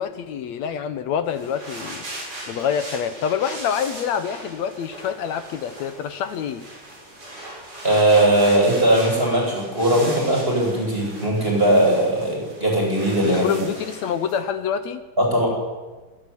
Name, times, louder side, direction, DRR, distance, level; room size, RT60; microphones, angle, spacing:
voice 1, 0.0-2.0 2.5-6.7 13.2-15.0, left 8 dB, 70° left, 10 dB, 1.8 m, -26 dB
sound 1, 1.3-14.4, right 1 dB, 40° right, 8.1 m, -38 dB
voice 2, 7.8-13.6 15.2-15.5, right 1 dB, 15° right, -1 dB, 7.9 m, -19 dB
24.5 x 12.5 x 9.8 m, 1.3 s
omnidirectional pair, 3.9 m